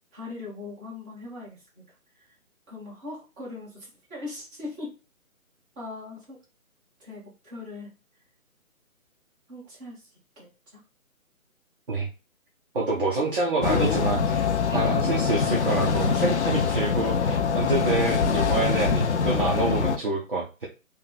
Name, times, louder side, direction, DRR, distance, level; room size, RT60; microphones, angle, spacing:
voice 1, 0.1-2.3 2.7-5.0 5.7-6.4 7.0-7.9 9.5-10.8 15.5-15.7, left 3 dB, 15° right, -8 dB, 1.3 m, -40 dB
voice 2, 12.7-20.7, right 3 dB, 40° right, -3 dB, 0.7 m, -27 dB
sound 1, 13.6-20.0, left 6 dB, 55° left, 0.5 m, -24 dB
3.4 x 2.3 x 3.9 m, 0.30 s
hypercardioid pair, 160°, 42 cm